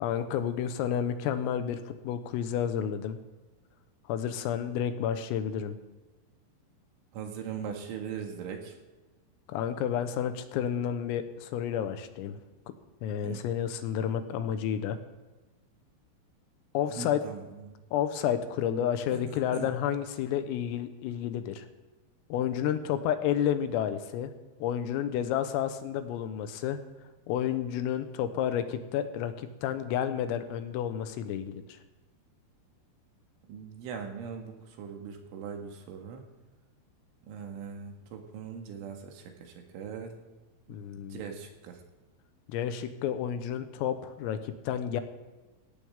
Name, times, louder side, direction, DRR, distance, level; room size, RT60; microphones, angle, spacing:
voice 1, 0.0-3.2 4.1-5.8 9.5-12.7 13.0-15.0 16.8-17.2 17.9-21.7 22.3-24.3 24.6-26.8 27.3-31.6 40.7-41.2 42.5-45.0, left 9 dB, 85° left, 9 dB, 3.7 m, -31 dB
voice 2, 7.1-8.8 13.2-13.4 16.9-17.8 19.1-19.2 19.5-19.7 33.5-36.2 37.3-40.1 40.7-40.8 41.1-41.8, right 7 dB, 75° right, 3 dB, 4.2 m, -40 dB
18.5 x 16.0 x 3.7 m, 1.2 s
omnidirectional pair, 6.0 m